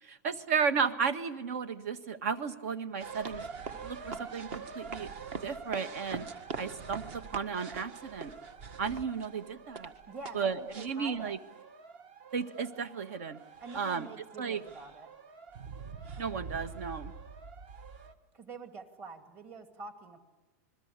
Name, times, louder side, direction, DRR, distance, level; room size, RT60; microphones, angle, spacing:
voice 1, 0.0-3.4 3.8-5.1 5.4-6.3 6.6-8.3 8.8-9.9 10.3-11.4 12.3-13.4 13.7-14.1 14.4-14.6 16.2-17.1, right 6 dB, 60° right, 10 dB, 1.7 m, -34 dB
sound 1, 3.0-18.1, right 5 dB, 45° right, 1.7 m, -44 dB
voice 2, 10.1-11.4 13.6-15.1 18.3-20.2, right 4 dB, 25° right, 6 dB, 2.3 m, -46 dB
28.5 x 21.5 x 8.4 m, 1.1 s
supercardioid pair, 170°, 9 cm